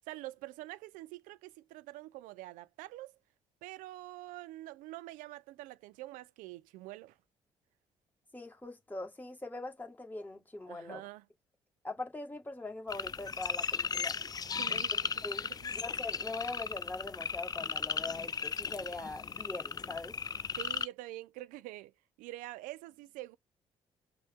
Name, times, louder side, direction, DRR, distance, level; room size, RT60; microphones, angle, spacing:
voice 1, 0.1-3.1 3.6-7.1 10.7-11.2 14.6-15.7 20.6-21.9 22.2-23.4, right 17 dB, 80° right, 0.4 m, -46 dB
voice 2, 8.3-11.0 11.8-14.1 14.7-14.9 15.2-15.5 15.7-20.2, left 2 dB, 15° left, 1.5 m, -42 dB
sound 1, 12.9-20.8, left 6 dB, 30° left, 0.4 m, -36 dB
5.3 x 2.1 x 3.5 m
hypercardioid pair, 55°, 14 cm